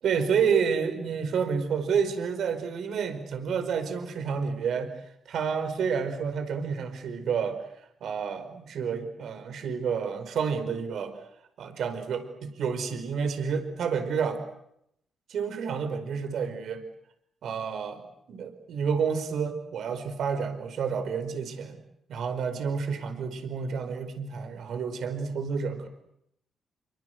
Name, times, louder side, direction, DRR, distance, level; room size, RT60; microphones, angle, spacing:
voice 1, 0.0-7.6 8.0-11.1 11.6-14.4 15.3-16.8 17.4-18.0 18.3-21.8 22.1-25.9, right 6 dB, 60° right, 9 dB, 4.9 m, -29 dB
29.5 x 24.0 x 8.0 m, 0.76 s
wide cardioid pair, 175°, 0 cm